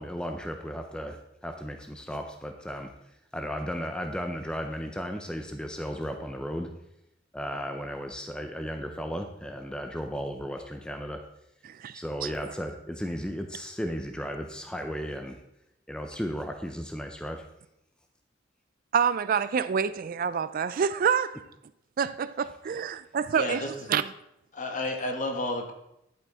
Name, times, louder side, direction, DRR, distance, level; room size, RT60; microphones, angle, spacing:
voice 1, 0.0-6.7 7.3-11.2 11.9-15.4 15.9-17.4, equal, 5° left, 5 dB, 0.6 m, -35 dB
voice 2, 11.6-12.3 18.9-21.4 22.0-24.1, right 7 dB, 45° right, 14 dB, 0.4 m, -27 dB
voice 3, 23.3-23.7 24.5-25.7, left 2 dB, 40° left, 4 dB, 1.4 m, -31 dB
10.5 x 8.3 x 3.6 m, 0.83 s
head